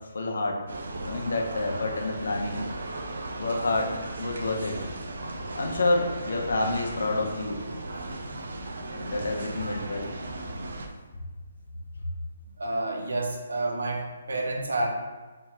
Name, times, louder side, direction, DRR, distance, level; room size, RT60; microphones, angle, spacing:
voice 1, 0.1-0.6 1.0-2.6 3.4-3.9 4.2-4.7 5.5-7.6 9.0-10.1, left 2 dB, 75° left, 1 dB, 0.8 m, -28 dB
sound 1, 0.7-10.9, right 2 dB, 60° right, 0.5 m, -36 dB
voice 2, 12.6-14.9, right 2 dB, 85° right, 2 dB, 0.8 m, -29 dB
3.6 x 3.0 x 4.4 m, 1.3 s
hypercardioid pair, 180°, 0 cm